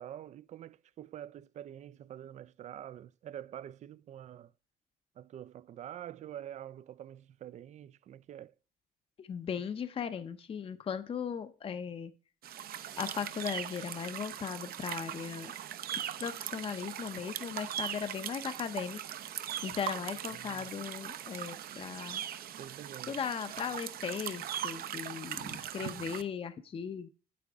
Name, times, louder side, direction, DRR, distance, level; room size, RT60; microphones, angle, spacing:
voice 1, 0.0-4.5 5.2-8.5 20.3-20.7 22.6-23.2, right 11 dB, 45° right, 0.4 m, -46 dB
voice 2, 9.2-12.1 13.0-15.5 15.9-19.0 19.6-22.2 23.1-27.1, left 7 dB, 35° left, 0.7 m, -38 dB
sound 1, 12.4-26.2, right 10 dB, 60° right, 0.8 m, -40 dB
8.7 x 8.5 x 3.6 m
cardioid pair, 110°, 17 cm